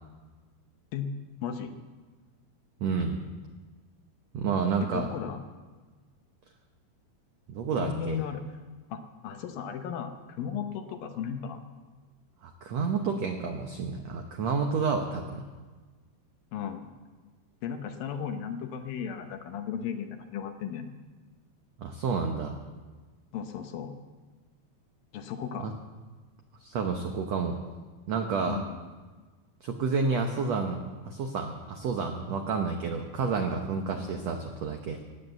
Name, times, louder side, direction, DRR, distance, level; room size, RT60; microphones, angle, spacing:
voice 1, 1.4-1.7 4.9-5.4 7.8-8.4 8.9-11.6 16.5-16.9 17.6-21.0 23.3-23.9 25.1-25.7 28.5-28.8 34.0-34.1, left 8 dB, 75° left, 7 dB, 2.5 m, -35 dB
voice 2, 2.8-3.2 4.3-5.1 7.5-8.2 12.4-15.4 21.8-22.6 25.6-25.7 26.6-27.6 28.1-28.6 29.6-30.8 31.0-35.0, right 5 dB, 85° right, 4 dB, 1.5 m, -30 dB
16.5 x 9.6 x 8.0 m, 1.4 s
omnidirectional pair, 4.6 m